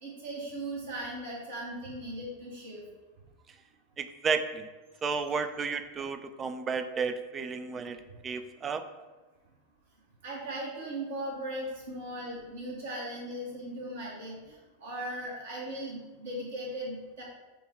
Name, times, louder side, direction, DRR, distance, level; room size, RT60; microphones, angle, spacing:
voice 1, 0.0-2.8 10.2-17.2, right 1 dB, 65° right, -5 dB, 1.2 m, -38 dB
voice 2, 4.0-4.7 5.0-8.0 8.2-8.8, right 5 dB, 20° right, 9 dB, 0.3 m, -32 dB
5.2 x 2.3 x 4.4 m, 1.2 s
figure-of-eight pair, 90°, 0 cm